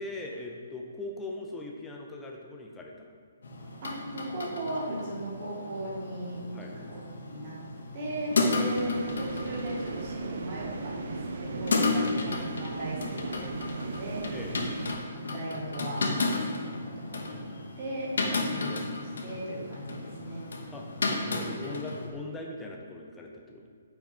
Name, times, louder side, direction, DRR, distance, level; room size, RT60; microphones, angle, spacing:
voice 1, 0.0-3.1 6.5-6.7 8.5-8.7 12.0-12.1 14.3-14.5 18.3-18.5 19.1-19.2 20.7-20.8 21.3-23.7, left 2 dB, 5° left, -1 dB, 0.5 m, -40 dB
sound 1, 3.4-22.1, left 3 dB, 85° left, 1.0 m, -33 dB
voice 2, 3.8-7.6 7.9-14.3 15.1-18.1 18.4-18.7 19.0-20.5, right 1 dB, 35° right, -5 dB, 1.6 m, -37 dB
sound 2, 8.7-14.9, right 4 dB, 55° right, 0.5 m, -37 dB
5.9 x 4.5 x 4.3 m, 2.1 s
hypercardioid pair, 170°, 0 cm